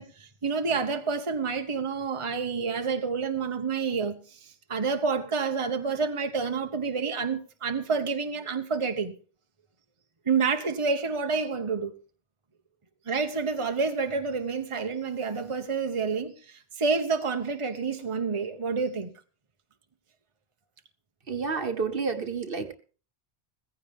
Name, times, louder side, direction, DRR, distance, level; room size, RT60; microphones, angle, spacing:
voice 1, 0.0-9.1 10.2-11.9 13.1-19.1, right 5 dB, 30° right, 1.1 m, -29 dB
voice 2, 21.3-22.7, right 5 dB, 60° right, 1.5 m, -30 dB
15.5 x 15.0 x 3.6 m
omnidirectional pair, 1.0 m